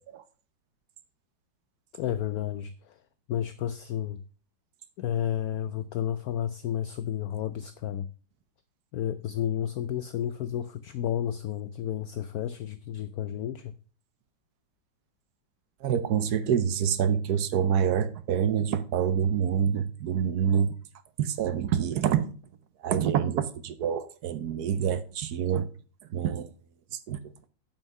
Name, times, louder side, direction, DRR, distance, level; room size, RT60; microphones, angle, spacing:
voice 1, 1.9-3.0 3.3-4.2 5.0-8.1 8.9-13.7, left 10 dB, 75° left, 0.8 m, -31 dB
voice 2, 15.8-20.7 21.2-22.3 22.8-25.7 26.1-26.5 27.1-27.2, right 8 dB, 65° right, 1.1 m, -26 dB
9.2 x 5.7 x 5.3 m
omnidirectional pair, 2.1 m